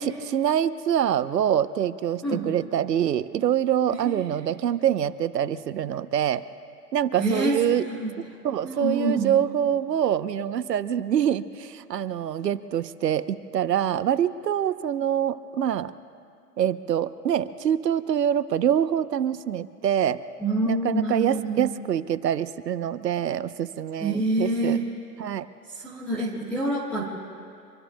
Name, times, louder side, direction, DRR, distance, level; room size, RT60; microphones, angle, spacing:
voice 1, 0.2-6.4 6.9-7.9 8.4-15.9 16.6-20.2 20.7-24.8 25.2-25.5, right 9 dB, 80° right, 14 dB, 0.9 m, -25 dB
voice 2, 3.9-4.3 7.1-8.1 8.6-9.3 20.4-21.8 24.0-24.9 25.7-27.0, right 2 dB, 5° left, -6 dB, 0.4 m, -27 dB
26.0 x 24.5 x 2.2 m, 2.4 s
hypercardioid pair, 130°, 49 cm